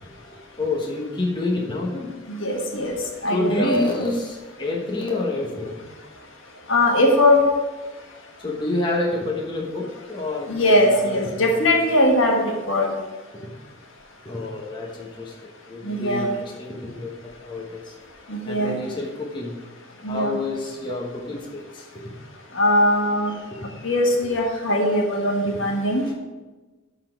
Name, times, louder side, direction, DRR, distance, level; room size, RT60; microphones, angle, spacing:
voice 1, 0.0-2.1 3.3-5.8 8.4-11.8 13.3-13.5 14.2-17.9 18.4-19.6 20.0-22.0 23.3-23.9 25.4-25.5, left 2 dB, 20° left, -2 dB, 1.1 m, -29 dB
voice 2, 2.3-3.0 3.2-3.7 6.7-7.4 10.5-12.9 15.8-16.3 18.3-18.8 20.0-20.4 22.5-23.3 23.8-26.0, left 1 dB, 65° left, 1 dB, 1.5 m, -20 dB
11.5 x 4.1 x 5.9 m, 1.2 s
head